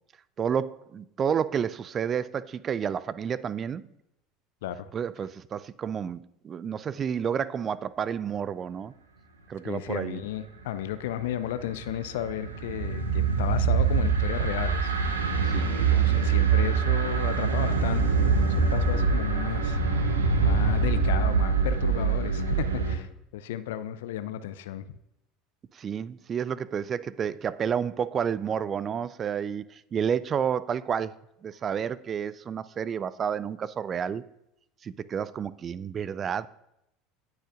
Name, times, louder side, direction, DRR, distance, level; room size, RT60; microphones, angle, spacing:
voice 1, 0.4-3.8 4.9-8.9 9.5-10.2 15.5-16.2 25.7-31.1 31.4-34.2 34.8-36.5, right 7 dB, 35° right, 0.4 m, -30 dB
voice 2, 9.6-14.9 15.7-20.1 20.4-25.0, left 11 dB, 65° left, 0.4 m, -34 dB
sound 1, 11.2-23.0, right 5 dB, 75° right, 0.9 m, -24 dB
17.0 x 6.4 x 2.5 m
figure-of-eight pair, 70°, 0 cm